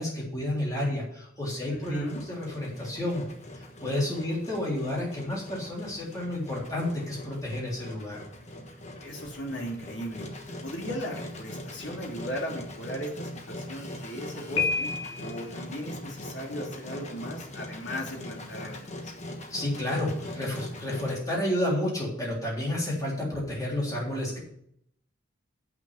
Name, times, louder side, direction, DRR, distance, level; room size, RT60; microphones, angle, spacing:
voice 1, 0.0-3.2 3.5-8.2 19.5-24.4, left 1 dB, 15° left, -4 dB, 3.4 m, -31 dB
voice 2, 1.7-2.2 9.0-10.3 10.6-14.9 15.2-19.0, equal, 60° left, -1 dB, 2.8 m, -37 dB
Engine, 1.8-21.2, left 1 dB, 35° left, 1.2 m, -41 dB
Piano, 14.6-15.5, left 4 dB, 75° left, 2.2 m, -29 dB
8.2 x 6.0 x 7.1 m, 0.70 s
head